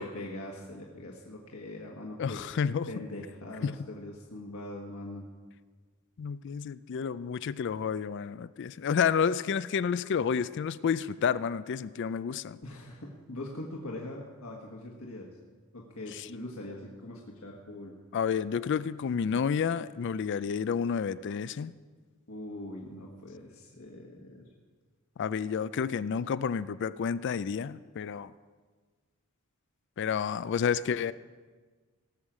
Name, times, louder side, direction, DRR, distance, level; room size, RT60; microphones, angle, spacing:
voice 1, 0.0-2.4 2.9-5.3 12.6-15.3 15.7-18.0 22.3-24.5, left 1 dB, 75° left, -1 dB, 1.5 m, -42 dB
voice 2, 2.2-2.9 3.6-3.8 6.2-12.6 18.1-21.7 25.2-28.3 30.0-31.1, left 6 dB, 55° left, 16 dB, 0.4 m, -30 dB
18.0 x 6.5 x 7.4 m, 1.4 s
head